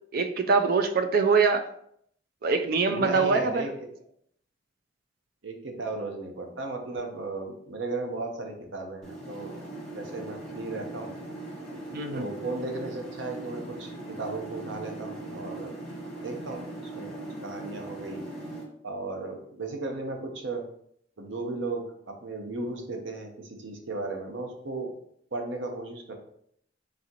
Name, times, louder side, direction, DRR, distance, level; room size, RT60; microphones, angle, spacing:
voice 1, 0.1-1.7 2.4-3.7 11.9-12.2, right 4 dB, 55° right, 7 dB, 0.4 m, -23 dB
voice 2, 2.9-3.7 4.0-4.1 5.4-9.6 9.9-11.1 12.1-15.7 16.2-17.1 17.4-18.2 18.8-20.6 21.2-24.9 25.3-26.1, right 3 dB, 85° right, 3 dB, 0.8 m, -35 dB
sound 1, 9.0-18.6, right 1 dB, ahead, 1.2 m, -40 dB
4.1 x 3.7 x 2.8 m, 0.69 s
head